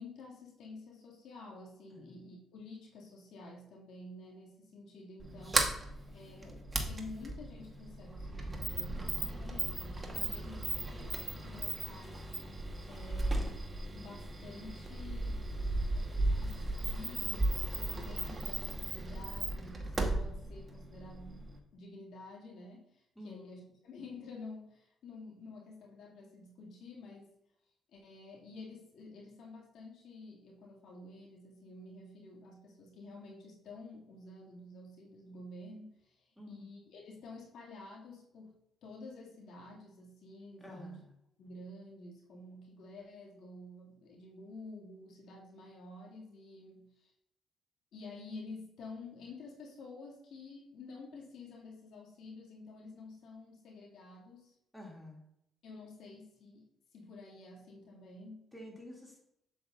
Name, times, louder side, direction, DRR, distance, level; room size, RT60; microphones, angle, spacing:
voice 1, 0.0-5.7 6.1-12.3 12.9-15.4 15.9-27.3 27.9-38.5 38.8-41.0 41.4-47.1 47.9-54.5 55.6-56.6 56.9-58.5, left 2 dB, 75° left, -3 dB, 2.3 m, -50 dB
Sliding door, 5.2-21.6, right 2 dB, 25° right, 1.3 m, -36 dB
voice 2, 10.2-10.5 23.1-23.6 36.4-36.7 40.6-41.1 54.7-55.3 58.5-59.2, left 1 dB, 5° left, -3 dB, 2.6 m, -50 dB
7.8 x 7.2 x 2.5 m, 0.75 s
cardioid pair, 90°, 0 cm